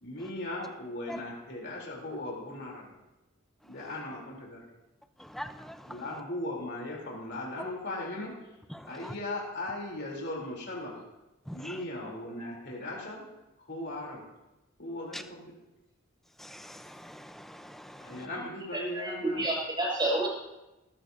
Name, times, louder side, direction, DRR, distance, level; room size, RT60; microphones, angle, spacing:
voice 1, 0.0-2.8 3.7-4.6 5.9-8.3 8.8-10.9 11.5-13.2 13.6-14.2 14.8-15.4 18.0-19.4, left 1 dB, 50° left, -3 dB, 3.3 m, -38 dB
voice 2, 5.3-5.8 8.7-9.1 11.5-11.7 15.1-15.2 16.4-18.2, equal, ahead, 8 dB, 0.5 m, -43 dB
voice 3, 18.7-20.3, right 1 dB, 20° right, -4 dB, 5.6 m, -30 dB
19.0 x 14.0 x 2.7 m, 0.99 s
head